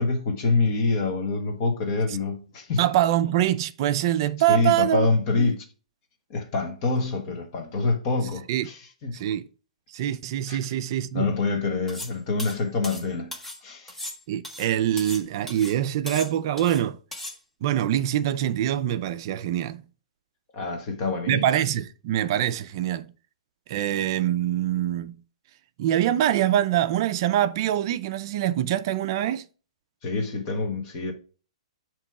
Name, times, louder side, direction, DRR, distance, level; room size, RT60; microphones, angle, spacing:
voice 1, 0.0-2.8 4.5-5.6 6.3-9.2 10.5-10.6 11.1-13.3 13.6-14.0 20.5-21.5 30.0-31.1, left 3 dB, 30° left, 1.3 m, -26 dB
voice 2, 2.8-5.1 5.4-5.6 8.5-8.7 9.1-9.4 9.9-11.3 14.3-17.0 17.6-19.8 21.3-23.1 23.7-25.1 25.8-29.4, right 11 dB, 40° right, 0.4 m, -24 dB
sound 1, 11.9-12.1 12.4-13.6 13.9-15.2 15.5-15.8 16.1-16.8 17.1-17.4, left 1 dB, 5° left, 0.8 m, -37 dB
7.3 x 3.0 x 4.7 m
hypercardioid pair, 160°, 4 cm